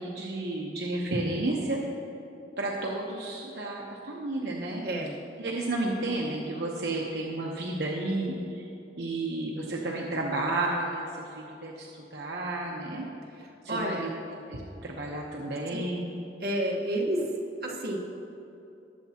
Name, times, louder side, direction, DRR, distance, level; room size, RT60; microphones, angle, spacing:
voice 1, 0.0-1.8 2.6-4.8 5.4-8.7 9.0-13.1 13.6-14.1 14.5-16.1, right 2 dB, 75° right, -2 dB, 1.0 m, -32 dB
voice 2, 4.8-5.1 13.7-14.1 16.4-17.3 17.6-18.0, right 1 dB, 60° right, -2 dB, 1.4 m, -29 dB
20.0 x 7.3 x 2.9 m, 2.8 s
head